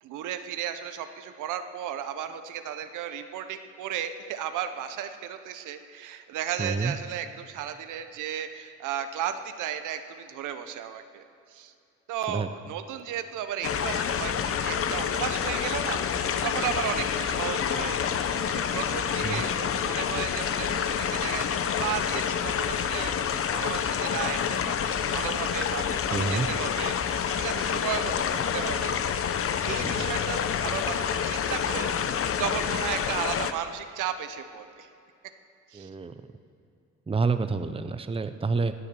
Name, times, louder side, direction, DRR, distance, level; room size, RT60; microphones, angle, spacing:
voice 1, 0.0-11.7 12.1-26.9 27.4-28.9 29.6-34.9 35.7-35.9, right 9 dB, 90° right, 9 dB, 0.9 m, -35 dB
voice 2, 6.6-6.9 12.3-12.5 19.2-19.4 26.1-26.5 29.8-30.1 35.7-36.1 37.1-38.7, right 4 dB, 20° right, 10 dB, 0.7 m, -28 dB
sound 1, 13.6-33.5, left 7 dB, 50° left, 0.7 m, -28 dB
17.5 x 8.3 x 6.9 m, 2.5 s
cardioid pair, 90°, 30 cm